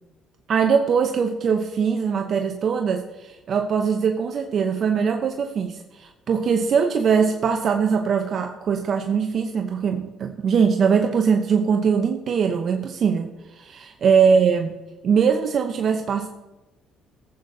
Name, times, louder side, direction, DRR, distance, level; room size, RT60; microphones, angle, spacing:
voice 1, 0.5-14.8 15.0-16.3, right 6 dB, 55° right, 5 dB, 0.8 m, -21 dB
17.0 x 8.2 x 2.8 m, 1.1 s
supercardioid pair, 75°, 0 cm